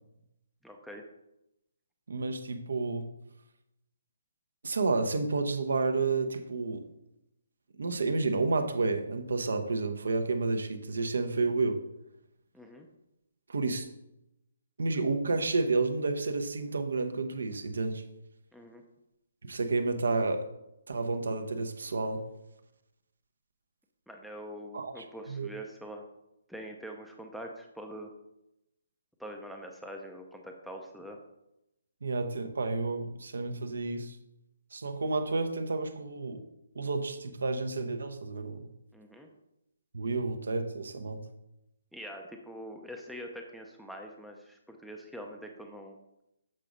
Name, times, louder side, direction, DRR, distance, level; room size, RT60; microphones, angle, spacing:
voice 1, 0.6-1.0 12.5-12.9 18.5-18.8 24.1-26.0 26.5-28.1 29.2-31.2 38.9-39.3 41.9-46.0, equal, ahead, 1 dB, 0.5 m, -44 dB
voice 2, 2.1-3.1 4.6-6.8 7.8-11.8 13.5-13.9 14.8-18.0 19.4-20.5 20.9-22.2 24.7-25.5 32.0-34.2 34.7-36.4 36.7-38.7 39.9-41.2, right 3 dB, 80° right, 7 dB, 0.9 m, -30 dB
7.5 x 3.9 x 5.0 m, 0.87 s
hypercardioid pair, 160°, 0 cm